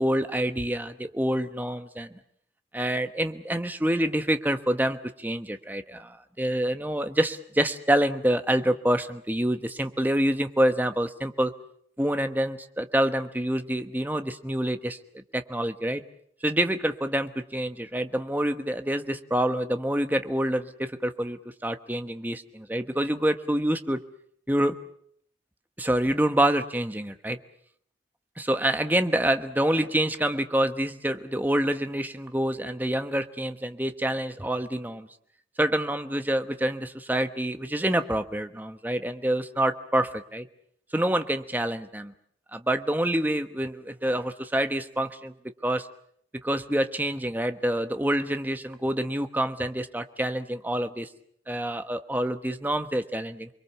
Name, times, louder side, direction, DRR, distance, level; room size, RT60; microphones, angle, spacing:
voice 1, 0.0-2.2 2.7-11.5 12.0-16.0 16.4-24.0 24.5-24.8 25.8-27.4 28.4-35.1 35.6-40.5 40.9-42.1 42.5-45.3 45.6-45.9 46.4-51.1 51.5-53.5, right 1 dB, 10° right, 8 dB, 1.1 m, -27 dB
28.5 x 22.5 x 7.0 m, 0.66 s
head